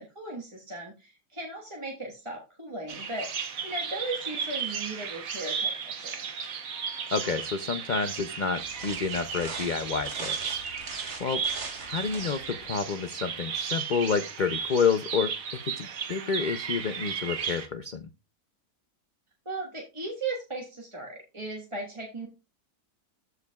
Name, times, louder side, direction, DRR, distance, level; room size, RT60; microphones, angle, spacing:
voice 1, 0.0-6.1 19.4-22.3, right 2 dB, 20° right, -1 dB, 1.4 m, -37 dB
Bird vocalization bird call bird song, 2.9-17.7, right 6 dB, 65° right, 1.3 m, -35 dB
voice 2, 7.1-10.6 11.2-11.4 11.8-15.3 15.7-18.1, left 5 dB, 80° left, 9 dB, 0.4 m, -29 dB
sound 1, 8.6-12.6, right 4 dB, 80° right, 2.0 m, -41 dB
14.5 x 4.8 x 2.3 m, 0.28 s
omnidirectional pair, 1.6 m